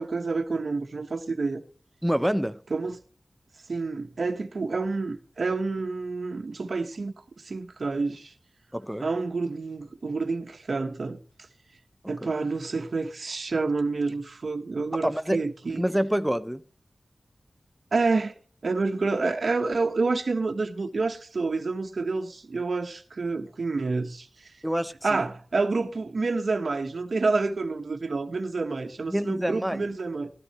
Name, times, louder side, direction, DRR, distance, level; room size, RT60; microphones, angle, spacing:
voice 1, 0.0-1.6 2.7-3.0 3.7-8.3 9.0-11.2 12.1-15.8 17.9-18.3 18.6-24.3 25.0-30.3, right 3 dB, 70° right, 1.1 m, -28 dB
voice 2, 2.0-2.6 8.7-9.1 12.2-12.3 15.0-15.4 15.8-16.6 24.6-25.3 29.1-29.9, equal, 5° right, 0.7 m, -27 dB
13.0 x 12.5 x 3.1 m
wide cardioid pair, 95°, 0 cm